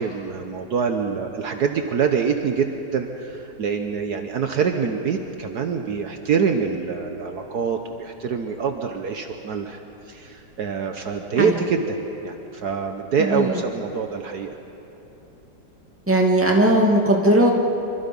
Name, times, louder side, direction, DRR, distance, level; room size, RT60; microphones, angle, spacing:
voice 1, 0.0-9.8 10.1-12.0 12.2-14.5, right 6 dB, 65° right, 5 dB, 1.5 m, -25 dB
voice 2, 16.1-17.5, right 1 dB, 5° right, -1 dB, 2.2 m, -18 dB
26.5 x 25.0 x 5.4 m, 3.0 s
omnidirectional pair, 1.9 m